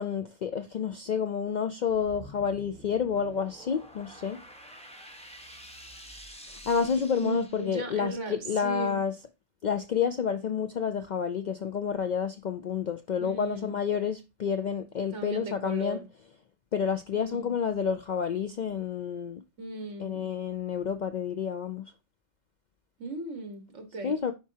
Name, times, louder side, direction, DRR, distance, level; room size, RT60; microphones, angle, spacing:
voice 1, 0.0-4.4 6.7-9.1 9.6-16.0 16.7-19.4 20.0-21.9 24.0-24.3, left 7 dB, 70° left, 0.4 m, -29 dB
sound 1, 1.8-8.1, right 1 dB, 5° left, 1.0 m, -49 dB
voice 2, 7.2-9.0 13.2-13.8 15.1-16.1 17.1-17.5 19.6-20.3 23.0-24.2, right 3 dB, 70° right, 1.8 m, -37 dB
10.5 x 4.6 x 2.7 m
omnidirectional pair, 1.3 m